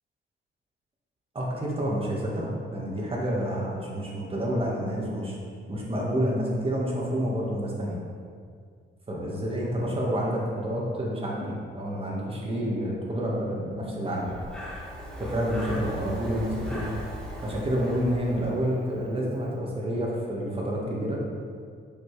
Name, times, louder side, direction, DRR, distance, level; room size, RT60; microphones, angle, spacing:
voice 1, 1.3-5.4 5.7-8.0 9.1-14.5 15.2-16.9 17.4-21.2, equal, 30° right, -4 dB, 1.5 m, -29 dB
Breathing, 14.2-19.1, equal, 5° left, 1.4 m, -38 dB
7.0 x 5.2 x 3.3 m, 2.1 s
cardioid pair, 105°, 19 cm